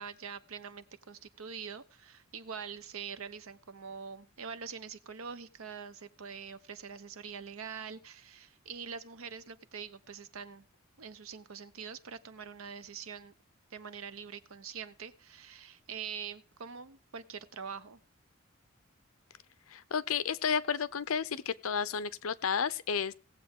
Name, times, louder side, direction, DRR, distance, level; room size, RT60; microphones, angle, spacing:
voice 1, 0.0-10.6 11.0-13.3 13.7-18.0, right 6 dB, 85° right, 0.8 m, -44 dB
voice 2, 19.7-23.1, left 6 dB, 80° left, 0.6 m, -32 dB
17.5 x 7.6 x 3.7 m
head